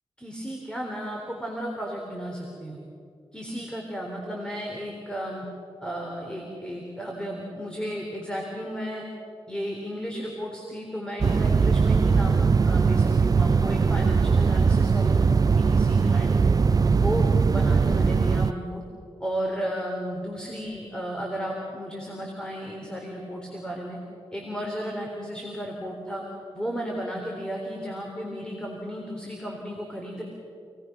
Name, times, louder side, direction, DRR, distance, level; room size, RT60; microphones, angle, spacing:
voice 1, 0.2-2.8 3.3-5.4 5.8-9.0 9.5-16.5 17.0-18.8 19.2-24.0 24.3-26.2 26.5-30.2, equal, 10° left, -1 dB, 3.8 m, -34 dB
sound 1, 11.2-18.5, right 5 dB, 40° right, 0.4 m, -20 dB
28.5 x 18.5 x 6.1 m, 2.5 s
wide cardioid pair, 80°, 10 cm